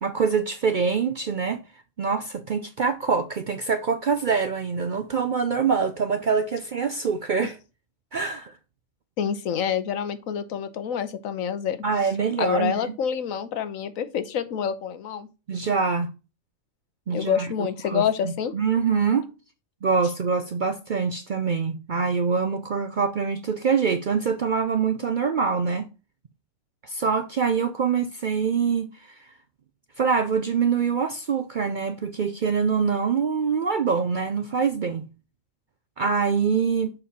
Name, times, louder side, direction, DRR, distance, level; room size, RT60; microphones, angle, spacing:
voice 1, 0.0-1.6 2.0-7.6 8.1-8.6 11.8-12.9 15.5-16.1 17.1-17.5 17.9-19.3 19.8-25.9 26.8-29.3 30.0-35.0 36.0-36.9, right 5 dB, 55° right, 0.5 m, -24 dB
voice 2, 9.2-11.8 12.4-15.3 17.1-18.5, left 8 dB, 80° left, 1.2 m, -27 dB
6.9 x 5.5 x 4.1 m
omnidirectional pair, 1.4 m